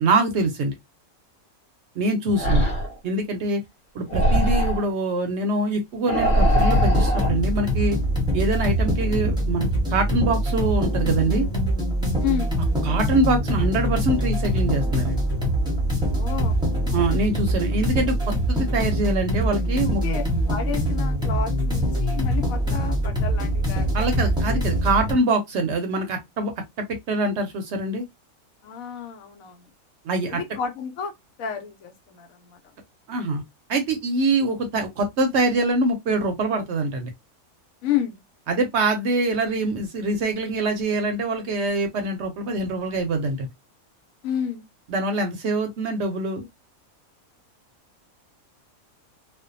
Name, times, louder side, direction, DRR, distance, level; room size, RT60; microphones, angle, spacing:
voice 1, 0.0-0.7 2.0-2.7 3.0-3.6 3.9-8.0 8.3-11.5 12.8-15.2 16.9-20.0 23.9-26.5 26.8-28.0 30.0-30.4 33.1-33.4 33.7-37.1 38.5-43.5 44.9-46.5, right 2 dB, 65° right, 0.7 m, -24 dB
sound 1, 2.4-3.0 4.1-4.9 6.1-7.3, equal, 50° left, 0.9 m, -21 dB
sound 2, 6.5-25.1, equal, 5° right, 0.6 m, -23 dB
voice 2, 12.2-12.6 16.1-16.6 20.0-24.3 28.6-29.7 30.3-31.1 31.4-32.7 37.8-38.2 44.2-44.6, left 8 dB, 80° left, 1.1 m, -31 dB
2.5 x 2.1 x 2.4 m
omnidirectional pair, 1.5 m